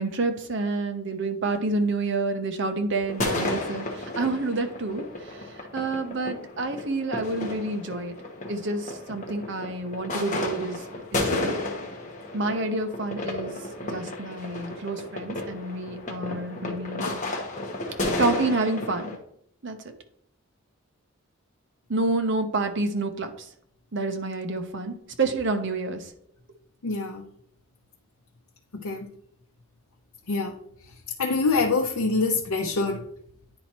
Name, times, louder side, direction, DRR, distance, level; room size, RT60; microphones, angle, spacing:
voice 1, 0.0-5.5 5.7-8.1 8.5-10.8 11.1-11.6 12.3-13.5 13.8-17.1 18.2-19.2 19.6-19.8 21.9-23.3 23.9-26.1, right 3 dB, 55° right, 0.8 m, -28 dB
sound 1, 3.1-19.2, left 2 dB, 35° left, 1.0 m, -32 dB
voice 2, 26.8-27.3 28.7-29.1 30.3-30.5 31.2-33.0, left 3 dB, 85° left, 0.6 m, -25 dB
9.7 x 4.2 x 2.9 m
head